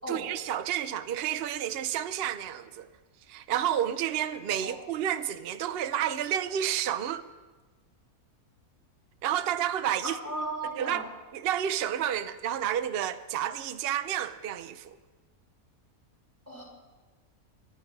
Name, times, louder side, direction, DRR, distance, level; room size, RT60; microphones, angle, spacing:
voice 1, 0.1-2.9 3.3-7.2 9.2-10.2 10.8-11.0 11.3-15.0, right 10 dB, 55° right, 0.7 m, -30 dB
voice 2, 10.0-11.0 16.5-16.6, right 1 dB, 10° right, 4.7 m, -35 dB
24.0 x 10.0 x 5.3 m
omnidirectional pair, 1.6 m